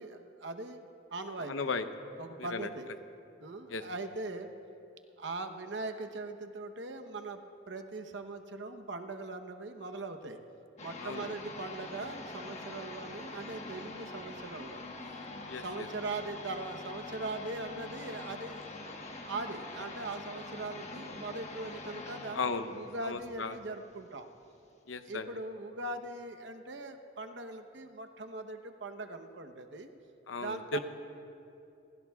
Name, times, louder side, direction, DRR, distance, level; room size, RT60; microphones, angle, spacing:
voice 1, 0.0-1.5 2.2-2.9 3.4-4.5 5.2-10.4 10.8-15.2 15.6-18.7 19.3-24.3 25.1-29.9 30.4-30.8, right 2 dB, 65° right, 6 dB, 0.9 m, -41 dB
voice 2, 1.4-1.8 2.4-2.7 3.7-3.8 11.0-11.3 15.5-15.9 22.3-22.7 23.0-23.6 24.9-25.3 30.3-30.8, left 4 dB, 85° left, 9 dB, 0.8 m, -36 dB
sound 1, 10.8-24.2, left 2 dB, 35° left, 1.3 m, -45 dB
29.5 x 16.0 x 2.4 m, 2.7 s
head